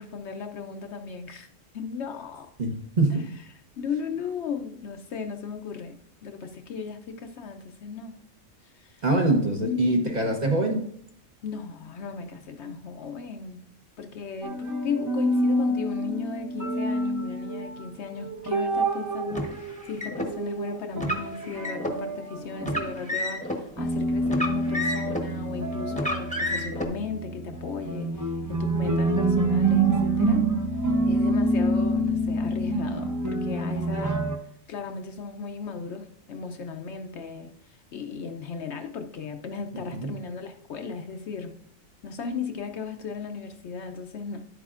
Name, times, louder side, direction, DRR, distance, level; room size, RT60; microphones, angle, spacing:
voice 1, 0.0-1.5 1.7-2.5 3.8-8.2 8.6-9.0 9.6-10.3 11.4-13.6 14.0-30.4 31.1-34.3 34.7-41.6 42.0-44.4, left 5 dB, 65° left, 6 dB, 0.9 m, -36 dB
voice 2, 2.6-3.2 9.0-10.8 39.7-40.1, right 2 dB, 35° right, 2 dB, 0.9 m, -24 dB
sound 1, 14.4-17.8 18.1-23.0 23.3-23.4 23.8-34.4, right 2 dB, 20° right, 0.6 m, -27 dB
Car, 19.3-20.3 20.9-22.0 22.6-23.6 24.2-25.3 25.9-26.8, left 1 dB, 5° left, 0.9 m, -30 dB
10.5 x 8.3 x 2.4 m, 0.66 s
omnidirectional pair, 1.4 m